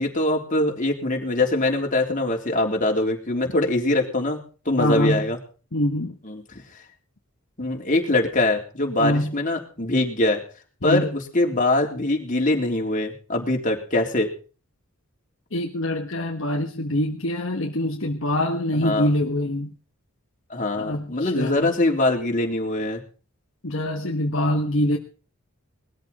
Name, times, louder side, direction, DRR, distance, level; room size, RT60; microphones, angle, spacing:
voice 1, 0.0-4.4 4.7-5.4 6.2-6.6 7.6-10.4 10.8-14.3 18.7-19.1 20.5-23.0, left 2 dB, 35° left, 1 dB, 3.5 m, -23 dB
voice 2, 4.8-5.2 5.7-6.2 9.0-9.4 10.8-11.1 15.5-19.7 20.8-21.7 23.6-25.0, left 1 dB, 60° left, 2 dB, 1.5 m, -24 dB
20.5 x 13.5 x 4.3 m, 0.38 s
head